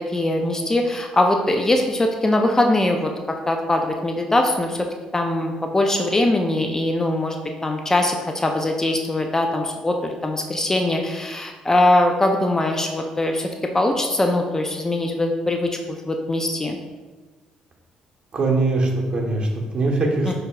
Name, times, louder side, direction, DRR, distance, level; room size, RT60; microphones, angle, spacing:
voice 1, 0.0-4.9 5.1-7.4 7.6-16.8 20.2-20.3, left 1 dB, 20° left, 3 dB, 0.4 m, -21 dB
voice 2, 18.3-20.3, right 2 dB, 40° right, -1 dB, 1.0 m, -21 dB
5.8 x 3.3 x 2.3 m, 1.3 s
supercardioid pair, 70°, 2 cm